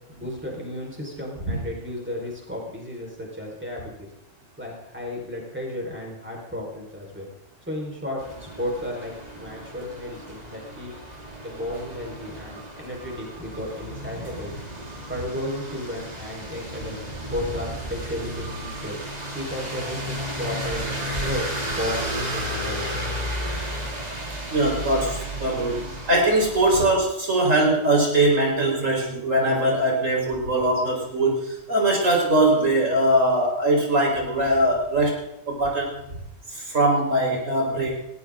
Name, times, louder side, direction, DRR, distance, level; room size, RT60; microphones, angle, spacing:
voice 1, 0.1-4.1 4.6-7.3 7.7-10.9 11.4-14.5 15.1-17.0 17.3-19.0 19.3-21.5 21.7-23.1, left 1 dB, 10° right, -2 dB, 4.8 m, -33 dB
sound 1, 8.2-26.8, right 1 dB, 30° right, 2.8 m, -33 dB
voice 2, 24.5-25.8 26.1-35.2 35.5-36.0 36.5-37.9, right 1 dB, 90° right, -1 dB, 5.0 m, -21 dB
20.0 x 17.0 x 3.9 m, 0.82 s
omnidirectional pair, 1.3 m